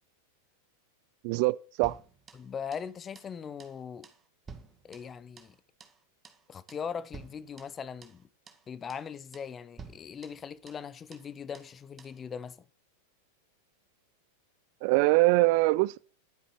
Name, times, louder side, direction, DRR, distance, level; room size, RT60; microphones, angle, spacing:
voice 1, 1.2-2.0 14.8-16.0, right 22 dB, 45° right, 0.4 m, -23 dB
sound 1, 1.8-2.9 3.2-3.3 3.6-3.8 4.0-5.6 5.8-6.0 6.2-6.4 6.7-6.9 7.1-8.2 8.5-8.6 8.9-9.1 9.3-9.5 9.8-10.9 11.1-11.3 11.5-11.7 12.0-12.2, right 5 dB, 20° right, 1.9 m, -51 dB
voice 2, 2.3-4.1 4.8-5.6 6.5-8.3 8.7-12.6, left 7 dB, 20° left, 0.9 m, -40 dB
12.0 x 9.6 x 4.4 m
figure-of-eight pair, 90°, 0 cm